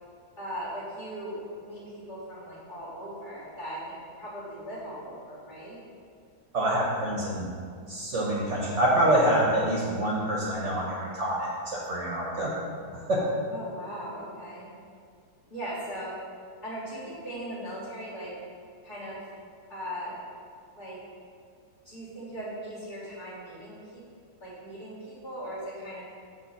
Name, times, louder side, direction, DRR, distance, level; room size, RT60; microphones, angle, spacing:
voice 1, 0.4-5.8 13.5-14.7 15.5-16.1 16.6-18.3 18.8-19.2 19.7-20.2 20.8-21.0 21.8-24.0 24.4-26.0, equal, 30° left, -9 dB, 1.7 m, -39 dB
voice 2, 6.5-7.5 7.9-12.5 13.1-13.2, right 1 dB, 55° right, -4 dB, 1.1 m, -26 dB
6.8 x 3.0 x 5.7 m, 2.2 s
omnidirectional pair, 1.6 m